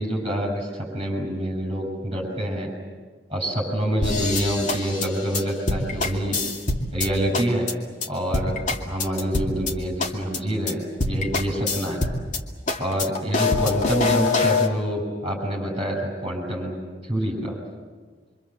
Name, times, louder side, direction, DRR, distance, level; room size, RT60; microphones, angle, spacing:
voice 1, 0.0-2.7 3.3-6.4 6.9-7.7 8.1-8.5 8.9-12.0 12.8-16.7 17.1-17.5, equal, 30° right, 1 dB, 6.9 m, -26 dB
sound 1, 4.0-7.1 7.3-7.7 8.0-8.1 8.3-9.7 10.0-10.4 10.7-10.8 11.0-12.4 12.7-14.7, left 3 dB, 45° left, 2.5 m, -24 dB
26.0 x 25.5 x 7.6 m, 1.5 s
head